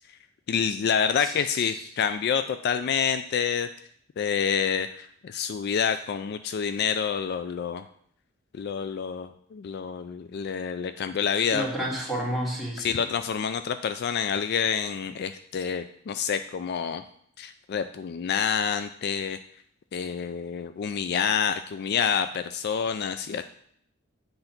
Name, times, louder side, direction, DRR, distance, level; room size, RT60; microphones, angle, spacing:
voice 1, 0.5-3.7 4.2-7.8 8.5-11.7 12.8-17.0 17.4-19.4 19.9-23.4, left 7 dB, 55° left, 10 dB, 0.3 m, -28 dB
voice 2, 11.5-13.0, right 1 dB, ahead, -5 dB, 2.1 m, -31 dB
7.9 x 3.9 x 5.8 m, 0.65 s
head